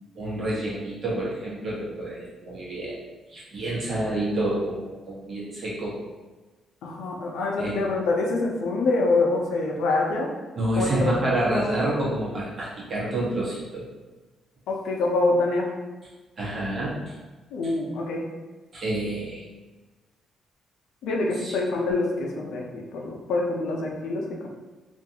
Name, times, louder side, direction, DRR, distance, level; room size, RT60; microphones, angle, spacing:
voice 1, 0.1-3.0 3.3-5.9 7.6-7.8 10.6-13.9 16.4-16.9 18.7-19.4 21.4-21.5, right 1 dB, 45° right, -7 dB, 1.1 m, -28 dB
voice 2, 6.8-10.3 10.8-11.0 11.3-11.7 14.7-15.7 17.5-18.2 21.0-24.5, left 2 dB, 80° left, 0 dB, 0.4 m, -25 dB
2.5 x 2.3 x 2.7 m, 1.2 s
cardioid pair, 90°, 0 cm